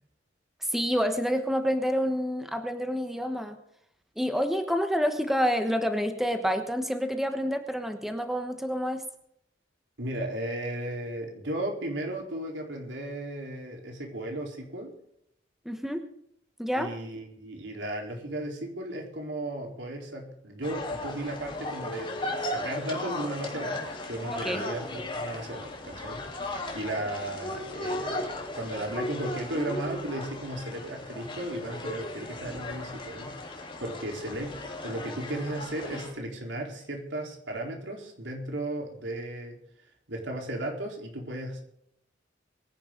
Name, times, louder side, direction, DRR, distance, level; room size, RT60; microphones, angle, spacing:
voice 1, 0.7-3.6 4.2-9.0 15.6-16.1 16.6-16.9 24.3-24.6, equal, ahead, 7 dB, 1.2 m, -28 dB
voice 2, 10.0-15.0 16.8-39.6 40.1-41.6, right 1 dB, 75° right, 1 dB, 4.0 m, -35 dB
sound 1, 20.6-36.1, left 1 dB, 30° left, 3.5 m, -36 dB
23.0 x 10.5 x 3.9 m, 0.73 s
head